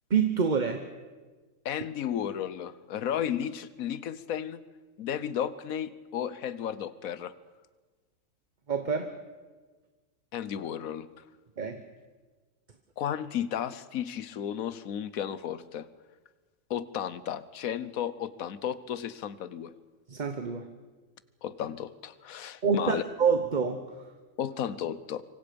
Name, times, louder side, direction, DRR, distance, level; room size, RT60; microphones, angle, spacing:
voice 1, 0.1-0.8 8.7-9.1 11.6-11.8 20.1-20.7 22.6-23.8, right 6 dB, 35° right, 7 dB, 1.0 m, -27 dB
voice 2, 1.6-4.6 5.0-7.3 10.3-11.1 13.0-15.9 16.7-19.7 21.4-23.0 24.4-25.2, left 9 dB, 85° left, 16 dB, 1.3 m, -33 dB
25.5 x 24.5 x 5.2 m, 1.4 s
omnidirectional pair, 1.4 m